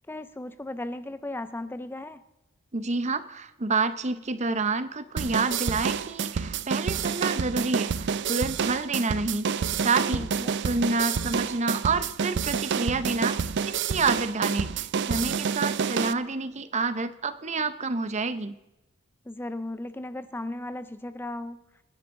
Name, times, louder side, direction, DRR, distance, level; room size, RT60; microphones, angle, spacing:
voice 1, 0.1-2.2 10.1-10.5 19.3-21.6, left 1 dB, 10° left, 12 dB, 0.4 m, -36 dB
voice 2, 2.7-10.2 10.6-18.6, right 3 dB, 35° right, 12 dB, 0.8 m, -28 dB
sound 1, 5.2-16.1, right 6 dB, 60° right, 0.5 m, -28 dB
25.0 x 10.5 x 3.8 m, 0.97 s
head